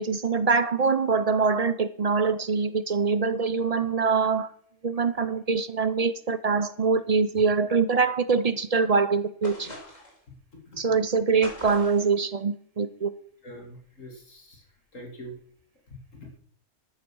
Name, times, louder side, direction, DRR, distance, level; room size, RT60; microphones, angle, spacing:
voice 1, 0.0-4.5 4.8-9.7 10.8-13.1, right 4 dB, 40° right, 13 dB, 0.7 m, -24 dB
sound 1, 9.4-10.2 11.4-12.1, left 1 dB, 30° left, 4.1 m, -42 dB
voice 2, 13.4-14.6 14.9-15.3 15.9-16.3, equal, 80° left, 1 dB, 3.1 m, -43 dB
13.0 x 9.3 x 6.2 m, 0.63 s
omnidirectional pair, 1.3 m